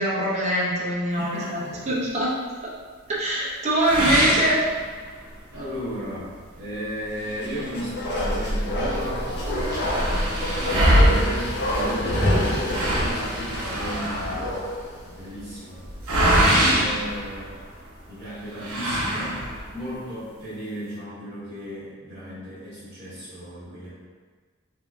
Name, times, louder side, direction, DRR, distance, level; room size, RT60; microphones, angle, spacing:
voice 1, 0.0-2.3 3.2-4.6 10.3-10.4 10.6-10.9, right 1 dB, 30° right, -7 dB, 0.7 m, -24 dB
voice 2, 1.1-2.0 5.5-6.3 6.5-9.3 10.3-15.8 16.1-17.5 18.1-19.4 19.7-23.9, equal, 50° right, -11 dB, 1.2 m, -35 dB
sound 1, 3.8-5.3 5.7-5.8 6.3-6.4 7.2-8.5 8.8-8.9 9.1-17.9 18.6-19.7, right 1 dB, 80° right, 0.8 m, -24 dB
Bark, 7.3-14.9 15.2-15.3, equal, 50° left, 0.7 m, -27 dB
3.4 x 2.6 x 3.4 m, 1.5 s
head